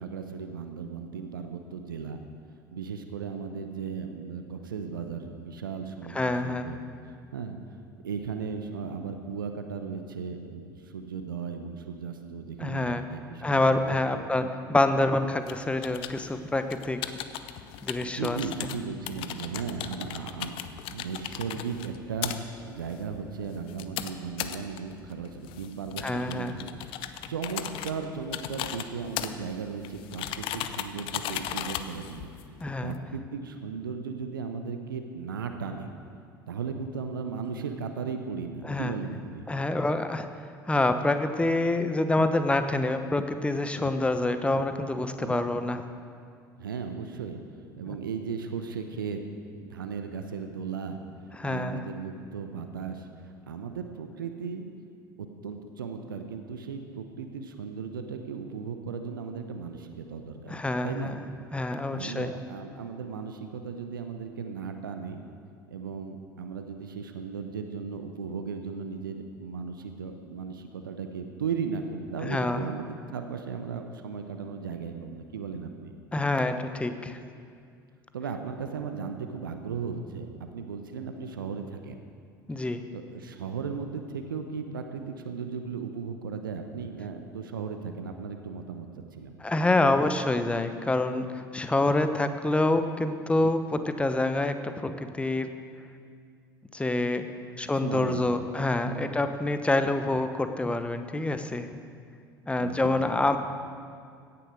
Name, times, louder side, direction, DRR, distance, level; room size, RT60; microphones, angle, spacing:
voice 1, 0.0-2.2 2.7-6.8 7.3-7.6 8.0-14.5 18.0-26.7 27.3-32.3 32.8-35.9 36.5-39.5 45.2-45.4 46.6-47.4 47.8-49.2 49.6-51.0 51.4-53.1 53.5-54.7 55.2-60.5 60.8-61.2 61.9-65.2 65.7-75.9 78.1-82.0 82.9-89.3 97.8-98.5 98.8-99.1 102.6-103.0, right 6 dB, 75° right, 6 dB, 0.9 m, -36 dB
voice 2, 6.1-6.7 12.6-13.0 13.4-17.0 17.8-18.4 26.0-26.5 32.6-32.9 38.6-38.9 39.5-40.3 40.7-45.8 51.4-51.8 60.5-61.2 61.5-62.3 72.2-72.6 76.1-77.2 82.5-82.8 89.4-95.5 96.7-97.3 97.6-101.7 102.5-103.4, left 2 dB, 10° left, 9 dB, 1.0 m, -27 dB
sound 1, 15.4-33.0, left 11 dB, 50° left, 0.7 m, -38 dB
17.0 x 10.0 x 6.3 m, 2.2 s
figure-of-eight pair, 65°, 11 cm